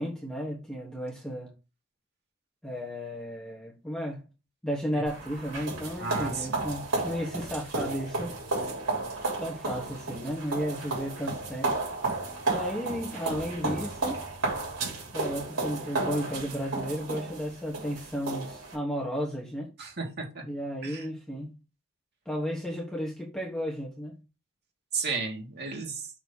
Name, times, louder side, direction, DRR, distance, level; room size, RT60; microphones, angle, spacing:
voice 1, 0.0-1.5 2.6-4.2 4.6-8.3 9.4-11.7 12.5-14.2 15.1-19.7 20.5-21.6 22.2-24.2, equal, 5° left, 1.2 m, -33 dB
sound 1, 5.1-18.8, right 3 dB, 75° right, 3.7 m, -33 dB
voice 2, 6.0-6.7 19.8-20.4 20.8-21.1 24.9-26.1, right 4 dB, 50° right, 1.9 m, -34 dB
6.2 x 3.1 x 5.4 m
head